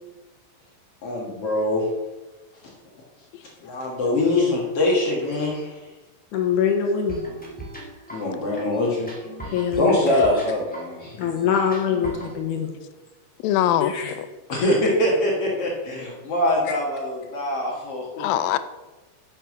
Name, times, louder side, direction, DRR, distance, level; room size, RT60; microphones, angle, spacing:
voice 1, 1.0-1.8 3.6-5.8 8.1-9.2 9.4-11.2 14.5-18.2, left 1 dB, 50° left, -3 dB, 2.4 m, -23 dB
voice 2, 6.3-7.2 9.5-10.2 11.2-12.7 13.8-14.2, left 7 dB, 70° left, 2 dB, 2.3 m, -23 dB
sound 1, 7.1-12.4, right 2 dB, 5° left, 0.7 m, -39 dB
voice 3, 13.4-14.3 18.2-18.6, left 11 dB, 90° left, 13 dB, 2.4 m, -22 dB
7.8 x 7.2 x 6.1 m, 1.2 s
omnidirectional pair, 4.0 m